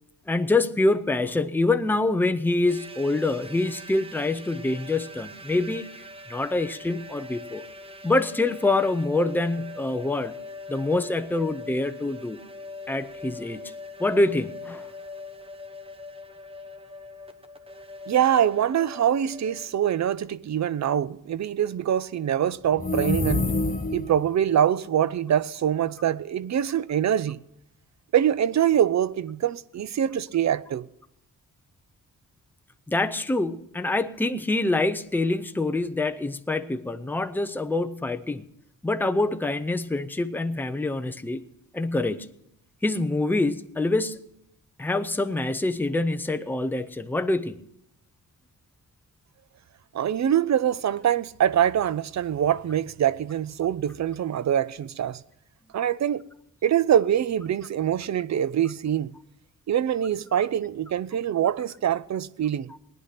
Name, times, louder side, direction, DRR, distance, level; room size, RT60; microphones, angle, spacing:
voice 1, 0.3-5.9 6.3-7.6 8.0-10.3 10.7-12.4 12.9-13.7 14.0-14.9 32.9-38.4 38.8-41.4 41.7-42.3 42.8-44.2 44.8-47.6, left 2 dB, 5° left, 0.5 m, -25 dB
sound 1, 2.7-19.8, left 2 dB, 15° right, 0.9 m, -42 dB
voice 2, 18.1-23.5 23.9-27.4 28.1-30.9 49.9-55.2 55.7-56.2 56.6-59.1 59.7-62.7, right 10 dB, 55° right, 0.5 m, -24 dB
sound 2, 22.7-24.2, left 2 dB, 25° left, 1.0 m, -26 dB
19.0 x 10.0 x 5.9 m
wide cardioid pair, 155°, 35 cm